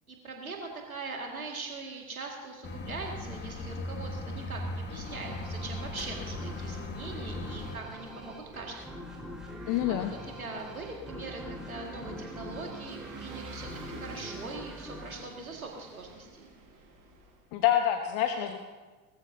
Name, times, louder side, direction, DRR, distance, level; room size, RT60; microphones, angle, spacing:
voice 1, 0.1-8.9 9.9-16.5, right 3 dB, 90° right, 1 dB, 2.1 m, -41 dB
sound 1, 2.6-7.8, left 1 dB, 25° left, 1.4 m, -38 dB
sound 2, 5.1-16.3, equal, ahead, 4.2 m, -45 dB
Vehicle / Engine, 7.7-17.4, right 2 dB, 45° right, 4.7 m, -48 dB
voice 2, 9.7-10.1 17.5-18.6, left 11 dB, 55° left, 6 dB, 1.1 m, -27 dB
20.5 x 13.5 x 2.7 m, 1.3 s
figure-of-eight pair, 70°, 41 cm